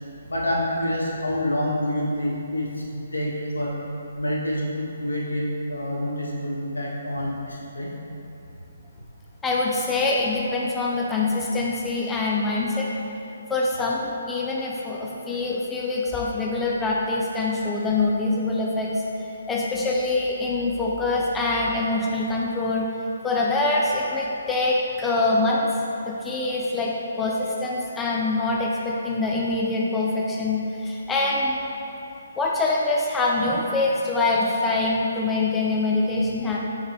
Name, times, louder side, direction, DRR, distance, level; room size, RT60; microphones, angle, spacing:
voice 1, 0.3-2.7 3.1-3.7 4.2-7.9, left 1 dB, 70° left, -3 dB, 1.1 m, -27 dB
voice 2, 9.4-12.9 13.5-22.9 23.2-25.7 26.1-26.9 27.2-31.6 32.4-36.6, left 2 dB, 10° left, -3 dB, 0.4 m, -24 dB
6.3 x 4.8 x 3.1 m, 2.9 s
figure-of-eight pair, 135°, 0 cm